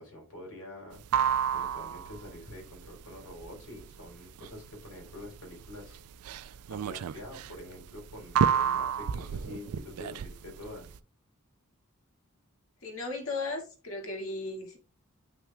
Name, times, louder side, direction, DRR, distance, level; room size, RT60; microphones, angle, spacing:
voice 1, 0.0-6.0 6.3-11.0, left 1 dB, 90° left, 3.8 m, -46 dB
sound 1, 0.9-11.0, right 7 dB, 85° right, 0.4 m, -31 dB
voice 2, 12.8-14.8, left 3 dB, 65° left, 2.0 m, -36 dB
9.6 x 5.9 x 2.3 m
head